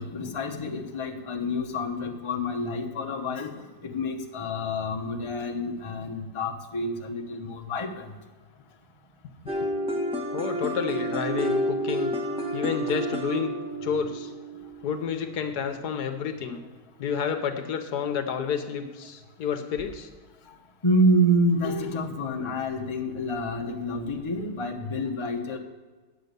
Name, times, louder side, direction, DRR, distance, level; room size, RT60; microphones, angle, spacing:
voice 1, 0.0-3.5 3.8-8.1 20.8-25.6, equal, 20° left, 1 dB, 0.8 m, -28 dB
sound 1, 9.5-15.3, right 1 dB, 5° right, 1.2 m, -30 dB
voice 2, 10.3-12.1 12.5-13.5 13.8-14.3 14.8-16.6 17.0-20.1, left 7 dB, 75° left, 8 dB, 1.4 m, -30 dB
9.5 x 7.7 x 6.7 m, 1.3 s
omnidirectional pair, 1.7 m